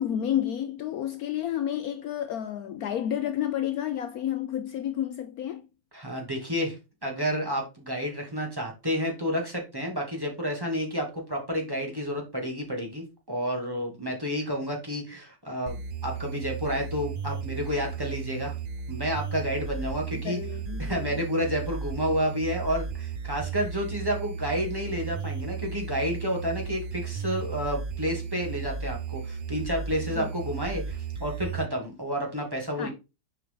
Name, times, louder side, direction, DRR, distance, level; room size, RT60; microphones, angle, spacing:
voice 1, 0.0-5.7 20.1-21.2 30.1-30.3 32.8-32.9, left 10 dB, 70° left, 1.0 m, -31 dB
voice 2, 5.9-6.8 7.0-18.5 18.9-20.4 20.8-32.9, equal, 15° right, 2.4 m, -30 dB
sound 1, 15.7-31.7, right 6 dB, 55° right, 0.6 m, -35 dB
6.9 x 4.7 x 3.8 m
omnidirectional pair, 1.8 m